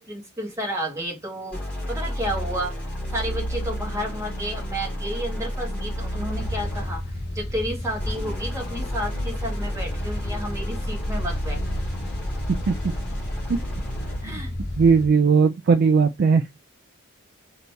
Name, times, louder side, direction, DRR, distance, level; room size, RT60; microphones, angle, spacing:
voice 1, 0.0-2.8 3.1-11.6 14.2-14.5, equal, 15° right, 1.8 m, -31 dB
sound 1, 1.5-7.1 8.0-14.4, equal, 5° left, 2.2 m, -31 dB
sound 2, 6.3-15.1, left 1 dB, 50° left, 1.0 m, -33 dB
voice 2, 14.8-16.4, right 5 dB, 50° right, 0.3 m, -18 dB
4.0 x 2.9 x 3.3 m
head